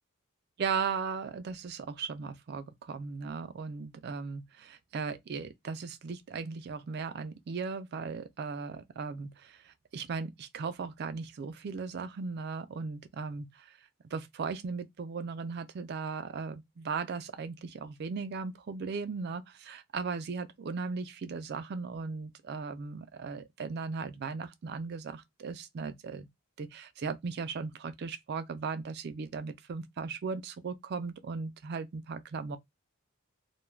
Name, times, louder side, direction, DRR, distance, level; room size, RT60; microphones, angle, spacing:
voice 1, 0.6-13.7 14.1-26.3 26.6-32.6, right 5 dB, 45° right, 0.3 m, -37 dB
2.3 x 2.2 x 3.1 m
head